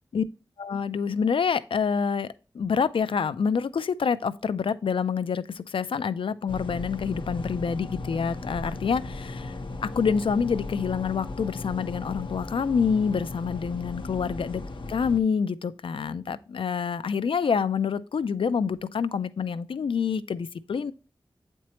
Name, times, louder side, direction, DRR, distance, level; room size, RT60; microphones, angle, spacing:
voice 1, 0.6-9.6 9.8-14.6 14.9-20.9, left 6 dB, 90° left, 0.4 m, -27 dB
sound 1, 6.5-15.2, left 2 dB, 70° left, 0.9 m, -36 dB
8.3 x 4.4 x 2.9 m
wide cardioid pair, 75°, 9 cm